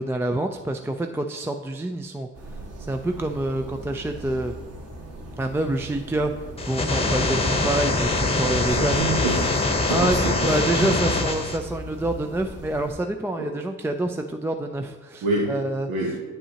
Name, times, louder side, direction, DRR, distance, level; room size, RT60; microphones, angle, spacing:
voice 1, 0.0-2.3 2.9-4.5 5.4-6.3 6.7-9.0 9.9-15.9, right 2 dB, 5° right, 4 dB, 0.4 m, -27 dB
sound 1, 2.3-12.9, right 1 dB, 45° right, 1.8 m, -39 dB
sound 2, 6.6-11.6, left 3 dB, 20° left, 0.9 m, -23 dB
voice 2, 8.7-11.0 13.4-13.5 15.2-15.5 15.9-16.2, right 2 dB, 85° right, -3 dB, 1.0 m, -27 dB
8.8 x 5.4 x 2.9 m, 1.3 s
hypercardioid pair, 50°, 34 cm